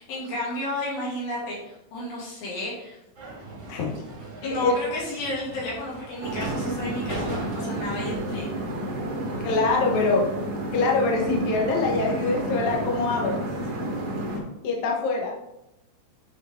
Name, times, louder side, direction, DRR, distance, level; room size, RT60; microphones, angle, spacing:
voice 1, 0.0-3.0 4.4-8.5, left 1 dB, 60° left, -5 dB, 3.8 m, -32 dB
sound 1, 3.1-8.3, right 2 dB, 45° right, 1.3 m, -39 dB
voice 2, 4.4-4.9 9.4-10.2 10.7-13.5 14.6-15.3, left 3 dB, 75° left, 0 dB, 1.7 m, -24 dB
sound 2, 6.2-14.4, right 1 dB, 65° right, 1.4 m, -31 dB
9.9 x 4.5 x 3.7 m, 0.87 s
omnidirectional pair, 4.9 m